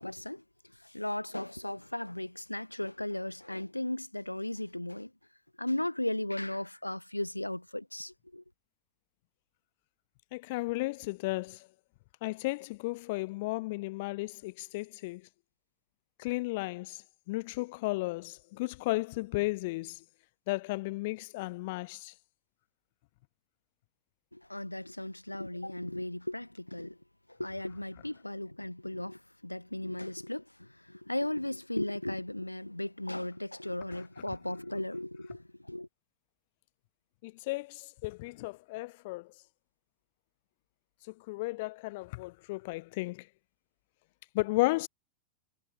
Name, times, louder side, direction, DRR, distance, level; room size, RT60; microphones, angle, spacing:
voice 1, 0.0-5.1 5.6-8.4 24.3-27.0 27.3-35.9, left 1 dB, 85° left, 4.8 m, -36 dB
voice 2, 10.3-11.7 12.2-15.2 16.2-20.0 20.5-22.1 37.2-39.3 41.0-43.3 44.3-44.9, left 22 dB, 50° left, 1.2 m, -34 dB
figure-of-eight pair, 90°, 0 cm